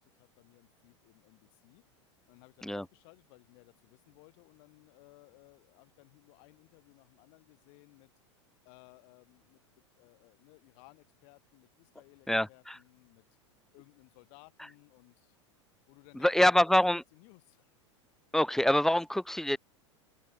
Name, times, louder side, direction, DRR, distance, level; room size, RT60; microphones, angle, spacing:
voice 1, 0.0-8.1 8.6-13.2 13.7-15.4 15.9-16.8 17.1-17.8, left 36 dB, 55° left, 6.3 m, -60 dB
voice 2, 12.3-12.8 16.2-17.0 18.3-19.6, left 1 dB, 5° left, 0.4 m, -25 dB
open air
hypercardioid pair, 95°, 16 cm